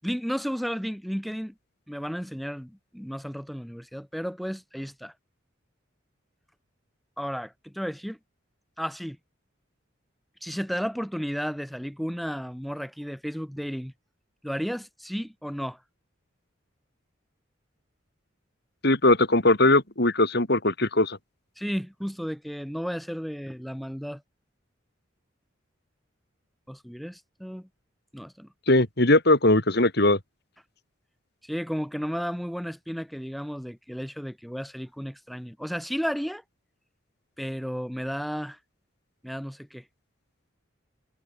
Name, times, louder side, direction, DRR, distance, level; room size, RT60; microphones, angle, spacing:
voice 1, 0.0-1.5 1.9-5.1 7.2-8.2 8.8-9.2 10.4-13.9 14.4-15.8 21.6-24.2 26.7-27.7 28.1-28.5 31.4-36.4 37.4-38.6 39.2-39.8, equal, ahead, 7.6 m, -33 dB
voice 2, 18.8-21.2 28.7-30.2, left 2 dB, 55° left, 3.7 m, -20 dB
head